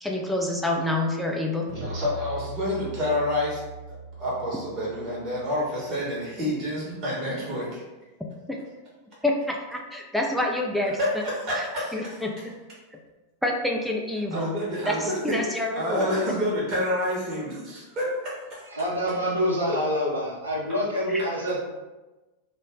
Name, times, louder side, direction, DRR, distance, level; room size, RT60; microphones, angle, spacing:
voice 1, 0.0-1.7 8.5-8.6 9.2-11.0 11.9-12.5 13.4-14.5 14.9-15.0 15.2-16.2, left 1 dB, ahead, -1 dB, 0.4 m, -27 dB
sound 1, 1.7-6.7, right 1 dB, 75° left, 0.7 m, -40 dB
voice 2, 1.7-3.6 4.2-7.8 10.9-12.2 14.3-18.6, left 1 dB, 35° right, -6 dB, 0.9 m, -28 dB
voice 3, 18.7-21.6, equal, 80° right, -4 dB, 0.6 m, -26 dB
2.2 x 2.1 x 3.4 m, 1.1 s
figure-of-eight pair, 90°, 0 cm